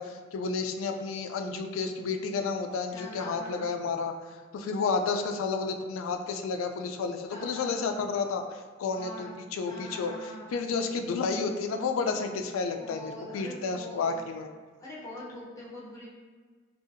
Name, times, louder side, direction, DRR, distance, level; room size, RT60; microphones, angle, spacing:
voice 1, 0.0-4.1 4.5-10.1 10.5-14.5, left 4 dB, 85° left, 6 dB, 0.3 m, -31 dB
voice 2, 2.9-3.7 7.3-7.8 9.0-9.4 9.7-10.5 12.8-14.2 14.8-16.1, left 1 dB, 15° left, -6 dB, 0.6 m, -43 dB
2.7 x 2.3 x 2.5 m, 1.5 s
head